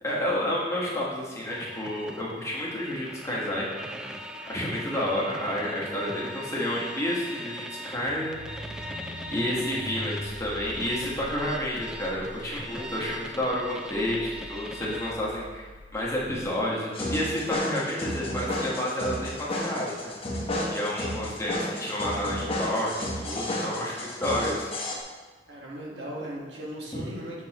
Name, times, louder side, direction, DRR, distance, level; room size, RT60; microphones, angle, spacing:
voice 1, 0.0-3.7 4.5-8.5 9.3-20.1 20.7-22.9 23.2-24.7 26.9-27.1, left 1 dB, 15° left, -5 dB, 1.3 m, -30 dB
sound 1, 1.5-15.1, equal, 5° right, 0.4 m, -41 dB
sound 2, 8.1-16.4, equal, 50° right, 1.1 m, -43 dB
sound 3, 16.9-24.9, left 1 dB, 35° left, 1.1 m, -32 dB
voice 2, 25.5-27.4, right 1 dB, 85° right, -3 dB, 1.5 m, -38 dB
7.0 x 6.1 x 3.0 m, 1.4 s
head